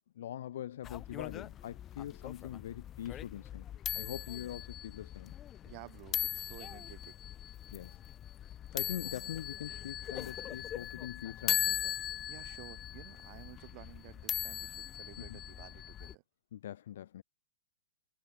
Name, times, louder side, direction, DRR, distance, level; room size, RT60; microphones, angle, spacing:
voice 1, 0.1-5.3 7.7-8.0 8.7-12.0 15.2-15.4 16.5-17.2, left 11 dB, 65° left, 0.9 m, -43 dB
sound 1, 0.8-16.1, left 11 dB, 20° left, 0.6 m, -40 dB
voice 2, 5.6-7.1 12.3-16.2, right 38 dB, 40° right, 1.3 m, -53 dB
hypercardioid pair, 145°, 0 cm